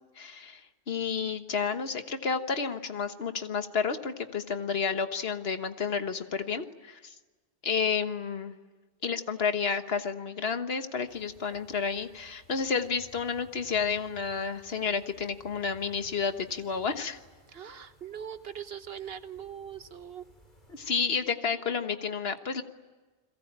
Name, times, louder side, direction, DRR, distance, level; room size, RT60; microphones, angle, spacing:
voice 1, 0.2-7.1 7.6-8.5 9.0-17.2 20.7-22.6, left 5 dB, 60° left, 8 dB, 1.6 m, -31 dB
sound 1, 11.1-21.1, equal, 40° left, 5.5 m, -59 dB
voice 2, 17.5-20.2, right 8 dB, 60° right, 11 dB, 1.3 m, -41 dB
30.0 x 22.5 x 8.8 m, 1.3 s
omnidirectional pair, 1.2 m